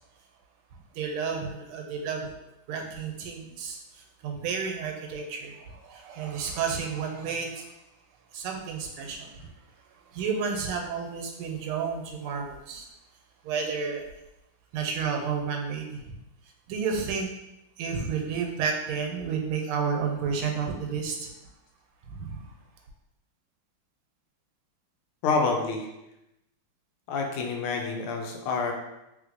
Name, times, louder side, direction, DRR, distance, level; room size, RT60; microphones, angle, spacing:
voice 1, 0.9-2.3 2.7-7.7 8.3-9.5 10.1-12.8 13.4-14.0 14.7-16.0 16.7-17.3 17.8-21.3 22.1-22.4, right 6 dB, 90° right, 3 dB, 1.5 m, -31 dB
voice 2, 25.2-25.9 27.1-28.7, left 4 dB, 85° left, 2 dB, 1.5 m, -27 dB
3.4 x 3.2 x 2.5 m, 0.89 s
omnidirectional pair, 2.3 m